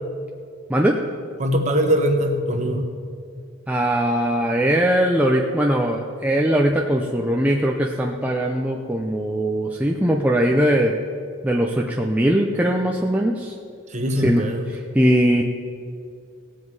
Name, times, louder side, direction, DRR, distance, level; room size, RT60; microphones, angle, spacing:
voice 1, 1.4-2.9 13.9-14.7, equal, 35° right, 4 dB, 1.1 m, -21 dB
voice 2, 3.7-10.9 11.4-13.5 14.1-15.4, right 1 dB, 5° right, 0 dB, 0.5 m, -20 dB
18.0 x 7.4 x 4.7 m, 2.3 s
head